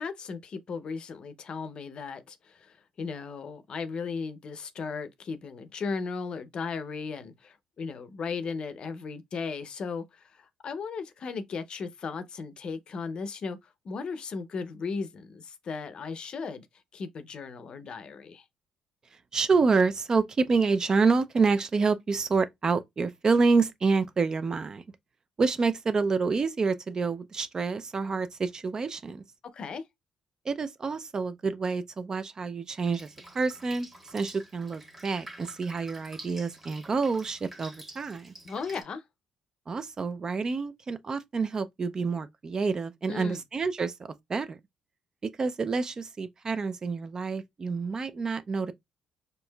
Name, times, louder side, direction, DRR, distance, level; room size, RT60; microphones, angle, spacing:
voice 1, 0.0-13.6 13.8-16.7 16.9-18.4 29.5-29.8 38.4-39.0 43.1-43.4, left 5 dB, 50° left, 0.6 m, -36 dB
voice 2, 19.3-24.8 25.4-29.2 30.5-38.3 39.7-43.9 44.3-44.6 45.2-48.7, right 4 dB, 35° right, 0.4 m, -28 dB
Drip, 32.8-38.8, right 1 dB, 15° right, 1.2 m, -48 dB
4.5 x 2.4 x 2.2 m
cardioid pair, 100°, 2 cm